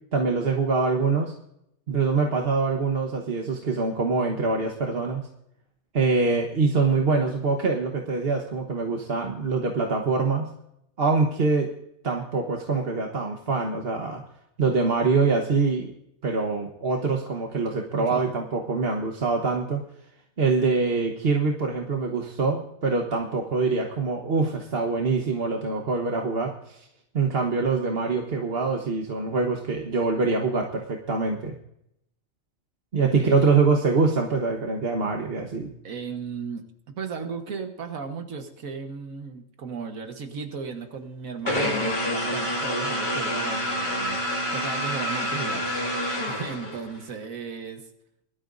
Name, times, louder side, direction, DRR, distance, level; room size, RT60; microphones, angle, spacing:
voice 1, 0.1-1.3 1.9-5.2 5.9-10.5 11.0-11.7 12.0-14.2 14.6-15.9 16.2-19.8 20.4-26.9 27.1-31.5 32.9-35.7, right 4 dB, 50° right, 2 dB, 1.4 m, -24 dB
voice 2, 33.0-33.5 35.8-36.6 37.0-45.7 46.3-47.9, right 5 dB, 85° right, 5 dB, 1.8 m, -35 dB
sound 1, 41.5-47.0, equal, 35° left, 2.4 m, -27 dB
21.5 x 12.5 x 2.6 m, 0.78 s
omnidirectional pair, 1.4 m